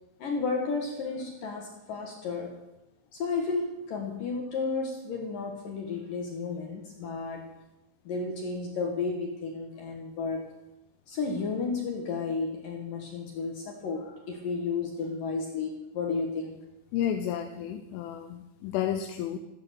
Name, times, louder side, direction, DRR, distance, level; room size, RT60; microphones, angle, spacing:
voice 1, 0.2-2.5 3.1-7.4 8.1-10.5 11.1-16.6, left 4 dB, 60° left, 2 dB, 2.4 m, -32 dB
voice 2, 16.9-19.4, left 10 dB, 80° left, 8 dB, 3.3 m, -31 dB
14.5 x 14.5 x 6.7 m, 0.99 s
omnidirectional pair, 5.8 m